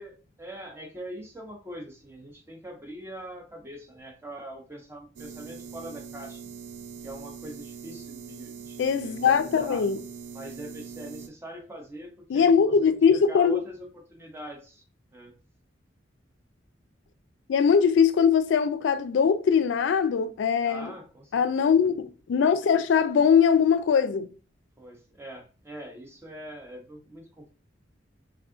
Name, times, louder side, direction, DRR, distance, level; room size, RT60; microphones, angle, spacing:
voice 1, 0.0-6.4 7.0-9.8 10.3-14.8 15.1-15.3 20.6-21.7 24.8-27.5, right 1 dB, 15° right, 0.8 m, -43 dB
sound 1, 5.2-11.3, right 6 dB, 70° right, 0.4 m, -42 dB
voice 2, 8.8-10.0 12.3-13.6 17.5-20.9 21.3-24.3, left 6 dB, 75° left, 0.3 m, -21 dB
3.5 x 2.4 x 3.6 m
head